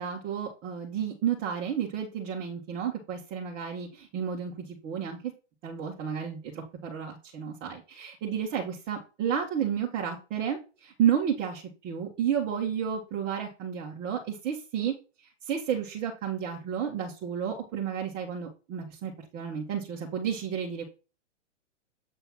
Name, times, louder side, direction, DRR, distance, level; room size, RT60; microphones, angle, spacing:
voice 1, 0.0-5.3 5.6-20.8, right 8 dB, 25° right, -2 dB, 1.2 m, -32 dB
7.3 x 3.2 x 5.9 m, 0.33 s
hypercardioid pair, 135°, 36 cm